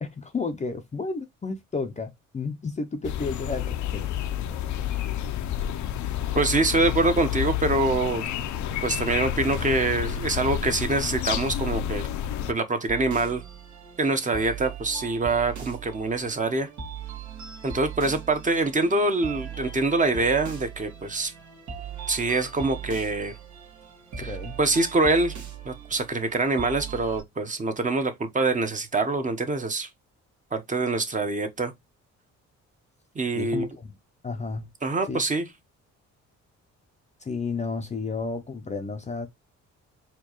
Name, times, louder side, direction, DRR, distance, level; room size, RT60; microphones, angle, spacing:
voice 1, 0.0-4.0 24.2-24.6 33.4-33.9 34.2-34.7 35.1-35.3 37.2-39.3, left 4 dB, 25° left, 0.5 m, -32 dB
sound 1, 3.0-12.5, left 10 dB, 70° left, 0.5 m, -29 dB
voice 2, 6.3-8.2 8.8-12.0 12.5-13.4 14.0-16.7 17.6-21.3 22.1-23.3 24.2-24.3 24.6-25.3 25.7-29.9 30.5-31.7 33.2-33.7 34.8-35.4, right 3 dB, 25° right, 0.7 m, -25 dB
hiphop loop beat, 12.9-27.2, right 7 dB, 70° right, 1.4 m, -39 dB
4.4 x 2.3 x 2.9 m
cardioid pair, 90°, 30 cm